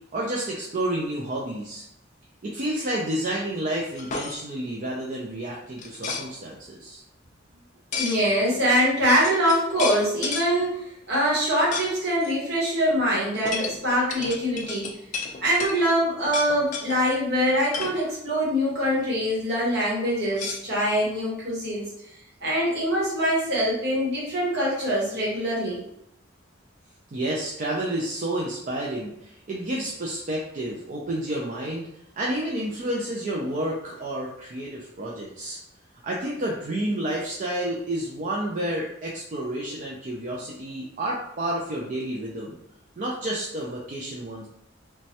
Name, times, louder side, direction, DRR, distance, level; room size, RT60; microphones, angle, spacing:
voice 1, 0.1-1.8 2.4-7.0 27.1-31.9 32.2-35.6 36.0-42.6 43.0-44.5, right 1 dB, 40° right, -3 dB, 0.4 m, -30 dB
sound 1, 4.0-4.4 5.8-6.3 7.9-8.2 8.9-9.0 9.2-10.5 11.7-11.9 12.2-12.3 13.5-15.8 16.3-17.0 17.5-18.0 20.3-21.2, left 5 dB, 40° left, 0.4 m, -32 dB
voice 2, 7.9-10.8 11.1-14.9 15.4-21.9 22.4-25.8, equal, 60° right, -5 dB, 1.2 m, -24 dB
3.1 x 2.2 x 2.8 m, 0.78 s
head